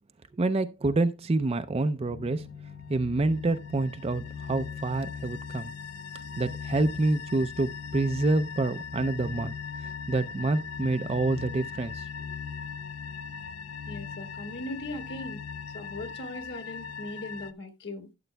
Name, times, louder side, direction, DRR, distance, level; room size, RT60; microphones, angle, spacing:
voice 1, 0.3-2.5 2.9-5.7 6.4-9.5 9.8-12.1, right 2 dB, 25° right, 0.4 m, -27 dB
sound 1, 2.0-17.5, left 6 dB, 85° left, 0.6 m, -39 dB
voice 2, 13.9-15.5 15.7-18.1, left 1 dB, 50° left, 1.8 m, -39 dB
13.0 x 7.8 x 2.2 m
head